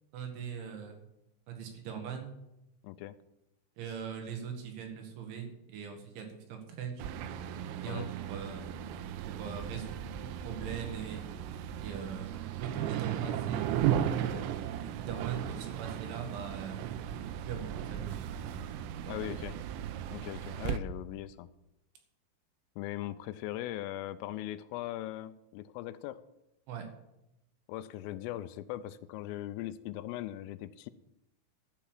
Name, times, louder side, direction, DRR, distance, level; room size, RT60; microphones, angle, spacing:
voice 1, 0.1-1.0 1.5-2.3 3.8-7.0 7.6-8.7 9.2-11.2 11.8-14.5 15.0-16.9 17.4-18.6 18.9-19.2 26.7-26.9, right 7 dB, 70° right, 3 dB, 3.8 m, -41 dB
voice 2, 2.8-3.1 7.9-8.1 19.1-19.6 20.1-21.5 22.8-26.2 27.7-30.9, left 14 dB, 85° left, 14 dB, 3.1 m, -39 dB
sound 1, 7.0-20.8, right 10 dB, 85° right, 3.3 m, -36 dB
12.0 x 7.0 x 7.6 m, 0.88 s
omnidirectional pair, 5.9 m